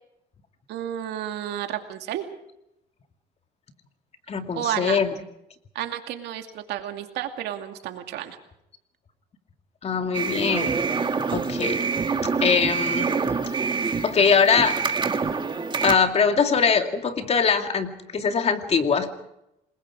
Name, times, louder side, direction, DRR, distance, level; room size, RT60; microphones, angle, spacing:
voice 1, 0.7-2.2 4.6-5.0 5.7-8.4, right 11 dB, 85° right, 5 dB, 2.5 m, -31 dB
voice 2, 4.3-5.1 9.8-10.7 11.1-11.8 12.4-13.1 13.7-14.8 15.8-19.1, left 6 dB, 40° left, 6 dB, 2.4 m, -22 dB
sound 1, 10.1-15.9, right 5 dB, 30° right, 1.7 m, -26 dB
27.5 x 21.0 x 4.9 m, 0.84 s
cardioid pair, 110°, 17 cm